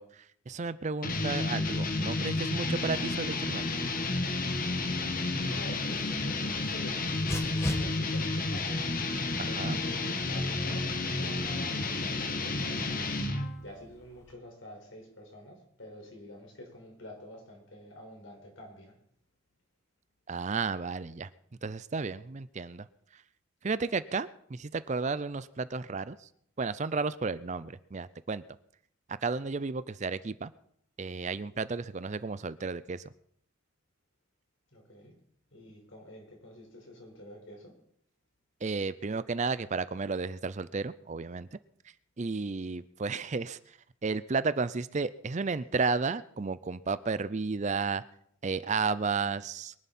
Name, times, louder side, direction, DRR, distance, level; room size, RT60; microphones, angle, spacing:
voice 1, 0.0-3.6 9.4-9.8 20.3-21.3 21.6-22.9 23.1-23.2 23.6-26.3 26.6-28.4 29.2-30.5 31.0-33.0 38.6-41.5 42.2-43.8 44.0-48.0 48.4-49.7, right 4 dB, 35° right, 16 dB, 0.5 m, -33 dB
sound 1, 1.0-13.6, left 2 dB, 45° left, 1.4 m, -31 dB
voice 2, 4.8-9.0 9.2-19.0 34.7-35.1 35.5-37.8, equal, 70° left, 1 dB, 4.8 m, -48 dB
Dog, 5.2-14.3, left 1 dB, 15° left, 1.6 m, -44 dB
23.0 x 11.0 x 4.3 m, 0.70 s
head